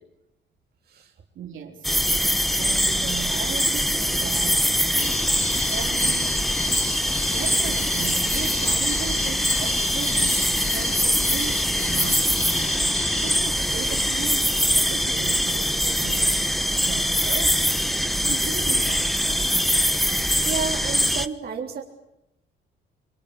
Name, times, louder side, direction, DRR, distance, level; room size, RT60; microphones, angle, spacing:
voice 1, 1.3-2.0 2.6-6.5 7.3-19.7, right 8 dB, 75° right, 1 dB, 4.9 m, -37 dB
sound 1, 1.8-21.3, equal, ahead, 1.2 m, -23 dB
sound 2, 5.0-14.3, left 3 dB, 30° left, 3.6 m, -34 dB
voice 2, 20.5-21.8, right 5 dB, 50° right, 1 dB, 3.8 m, -31 dB
26.0 x 22.5 x 8.5 m, 0.86 s
cardioid pair, 90°, 20 cm